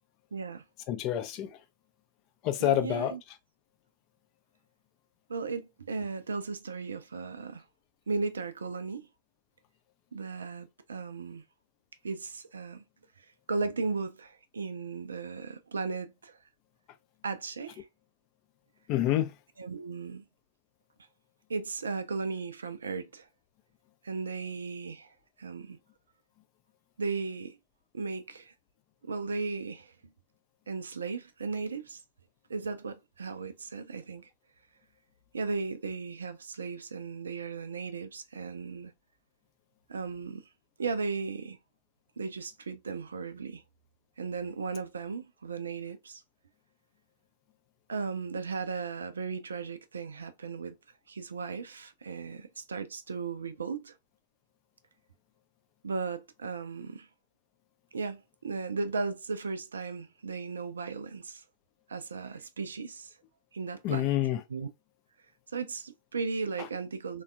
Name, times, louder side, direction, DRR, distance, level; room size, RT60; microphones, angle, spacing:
voice 1, 0.3-0.6 2.6-3.2 5.3-7.6 8.1-9.1 10.1-11.4 12.0-12.8 13.2-16.4 17.2-17.9 19.6-20.2 21.5-23.3 24.0-25.8 27.0-27.6 27.9-28.5 29.0-29.9 30.7-32.0 32.5-34.3 35.3-38.9 39.9-40.5 40.8-41.6 42.2-43.6 44.2-46.2 47.9-50.8 51.1-53.9 55.8-57.1 57.9-61.4 61.9-63.1 63.5-64.1 64.5-64.7 65.5-67.2, right 4 dB, 70° right, 0.3 m, -36 dB
voice 2, 0.9-1.5 2.4-3.1 18.9-19.3 63.8-64.4, left 12 dB, 40° left, 0.4 m, -27 dB
3.3 x 2.2 x 2.3 m
figure-of-eight pair, 90°, 0 cm